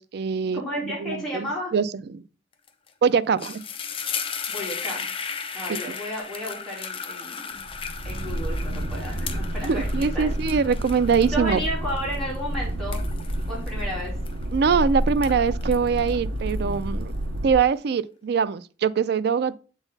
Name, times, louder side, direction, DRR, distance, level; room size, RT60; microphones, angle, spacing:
voice 1, 0.0-2.2 3.0-3.6 9.6-11.6 14.5-17.1 17.4-19.6, right 6 dB, 60° right, 0.4 m, -23 dB
voice 2, 0.5-1.7 4.5-5.1 5.5-7.6 8.0-9.9 10.1-10.3 11.3-13.0 13.5-14.1, equal, ahead, 3.1 m, -32 dB
sound 1, 2.7-2.9 3.2-14.7 15.1-17.0, left 6 dB, 30° left, 0.6 m, -36 dB
sound 2, 7.6-17.5, right 1 dB, 85° right, 0.7 m, -29 dB
7.9 x 3.9 x 4.0 m
head